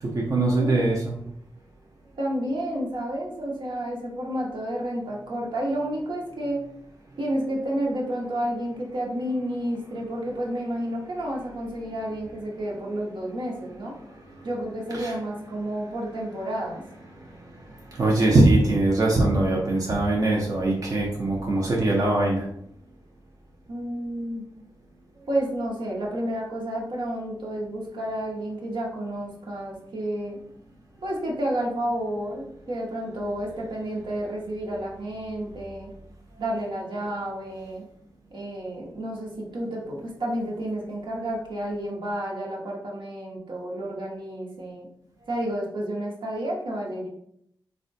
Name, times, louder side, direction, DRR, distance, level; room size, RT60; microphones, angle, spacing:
voice 1, 0.0-1.1 14.9-15.1 17.9-22.5, right 2 dB, 45° right, -2 dB, 0.5 m, -22 dB
voice 2, 0.6-0.9 2.2-6.7 7.2-13.9 14.4-16.8 23.7-24.4 25.3-30.4 31.0-35.9 36.4-37.8 38.3-44.9 45.3-47.1, right 1 dB, 75° right, -3 dB, 0.8 m, -30 dB
3.5 x 2.1 x 2.6 m, 0.71 s
wide cardioid pair, 85°, 8 cm